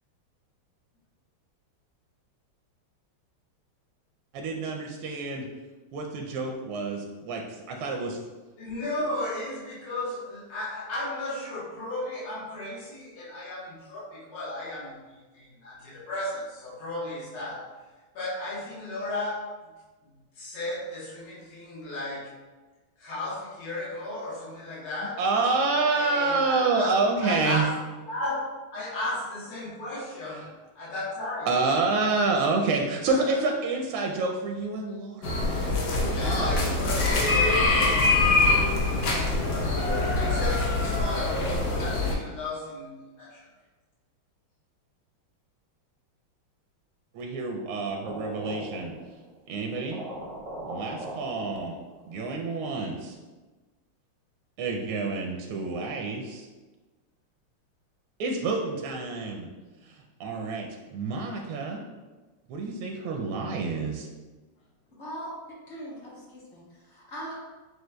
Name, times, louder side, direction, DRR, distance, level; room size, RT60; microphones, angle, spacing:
voice 1, 4.3-5.5 5.9-7.4 7.7-8.2 25.2-27.6 30.3-30.4 31.5-35.4 35.7-36.5 47.1-48.9 49.5-50.0 50.6-51.8 52.1-53.2 54.6-56.5 58.2-59.5 59.8-59.9 60.2-61.8 62.5-64.1, right 3 dB, 85° right, 1 dB, 1.5 m, -28 dB
voice 2, 8.6-17.6 18.2-19.4 20.4-22.3 23.0-25.2 25.9-26.9 27.2-27.7 28.1-28.4 28.7-30.4 30.8-31.5 32.6-32.8 33.1-33.4 36.1-38.9 40.2-43.5, left 1 dB, 85° left, -5 dB, 2.0 m, -35 dB
sound 1, 35.2-42.1, left 2 dB, 65° left, 1.0 m, -24 dB
sound 2, 48.0-49.3 49.6-49.7 49.9-52.1, right 1 dB, 65° right, 0.8 m, -40 dB
voice 3, 65.0-65.3 65.7-67.4, equal, 45° left, -6 dB, 0.9 m, -40 dB
7.6 x 2.6 x 2.2 m, 1.2 s
omnidirectional pair, 2.3 m